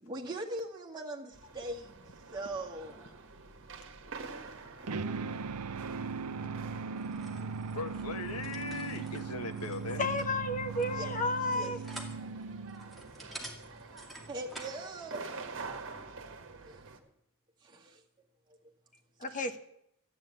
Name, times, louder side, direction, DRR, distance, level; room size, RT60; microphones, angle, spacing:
voice 1, 0.0-3.1 10.8-11.7 14.3-15.2 16.6-16.8 17.6-18.0 19.3-19.4, right 2 dB, 20° right, -2 dB, 2.1 m, -41 dB
sound 1, 1.3-17.0, right 4 dB, 60° right, 1.5 m, -48 dB
sound 2, 4.9-13.1, right 5 dB, 90° right, 0.6 m, -39 dB
sound 3, 6.9-14.8, right 1 dB, ahead, 2.3 m, -50 dB
voice 2, 7.7-10.1, left 3 dB, 75° left, 6 dB, 1.5 m, -39 dB
voice 3, 10.0-11.8 19.2-19.6, left 2 dB, 35° left, 8 dB, 1.1 m, -32 dB
13.0 x 8.9 x 8.6 m, 0.74 s
head